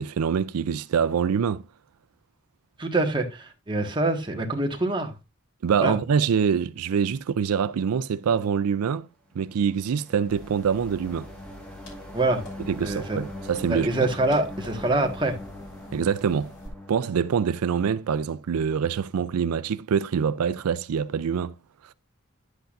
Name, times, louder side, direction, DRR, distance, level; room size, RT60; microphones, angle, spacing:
voice 1, 0.0-1.6 5.6-9.1 9.4-11.3 12.7-13.9 15.9-16.5 16.9-21.5, right 7 dB, 85° right, 0.4 m, -25 dB
voice 2, 2.8-5.1 5.8-6.0 12.1-12.4 12.8-13.2 13.7-15.4, right 2 dB, 20° right, 1.5 m, -25 dB
sound 1, 9.5-18.2, left 1 dB, 5° left, 1.5 m, -42 dB
sound 2, 10.3-16.7, left 2 dB, 90° left, 6.1 m, -47 dB
10.0 x 8.1 x 2.5 m
head